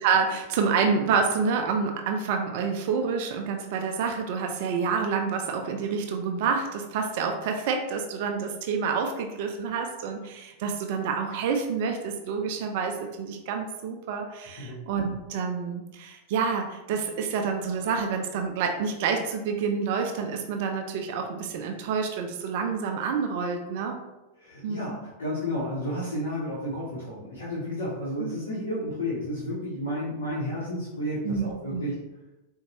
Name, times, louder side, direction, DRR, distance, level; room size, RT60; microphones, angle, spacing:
voice 1, 0.0-24.0 24.6-24.9 28.2-28.3 31.2-31.9, right 5 dB, 50° right, 4 dB, 0.3 m, -28 dB
voice 2, 24.4-31.9, left 1 dB, 65° left, -8 dB, 0.8 m, -32 dB
3.9 x 2.1 x 2.8 m, 1.0 s
figure-of-eight pair, 90°, 0 cm